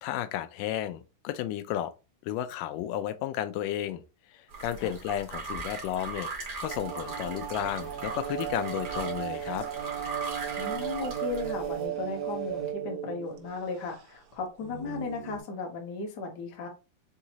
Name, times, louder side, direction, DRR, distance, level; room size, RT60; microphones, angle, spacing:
voice 1, 0.0-1.9 2.2-4.0 4.3-6.3 6.6-9.7, left 11 dB, 90° left, 2.2 m, -33 dB
sound 1, 4.5-11.8, right 4 dB, 50° right, 1.3 m, -39 dB
sound 2, 6.7-12.7, left 2 dB, 25° left, 1.3 m, -54 dB
sound 3, 6.7-13.6 13.9-14.0 14.6-15.4, right 10 dB, 75° right, 1.8 m, -35 dB
voice 2, 10.6-16.7, left 4 dB, 65° left, 1.0 m, -36 dB
5.8 x 2.8 x 2.8 m
omnidirectional pair, 3.8 m